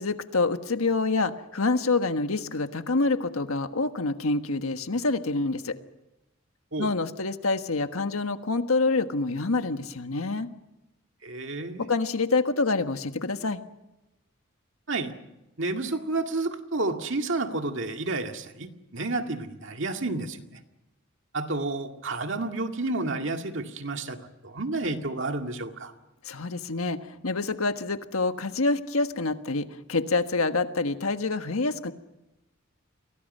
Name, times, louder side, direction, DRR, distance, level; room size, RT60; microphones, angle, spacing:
voice 1, 0.0-5.8 6.8-10.5 11.8-13.6 26.2-31.9, left 3 dB, 90° left, 8 dB, 1.5 m, -27 dB
voice 2, 11.2-11.9 14.9-15.1 15.6-20.6 21.3-25.9, right 2 dB, 60° right, 5 dB, 2.1 m, -30 dB
30.0 x 23.5 x 5.5 m, 0.95 s
head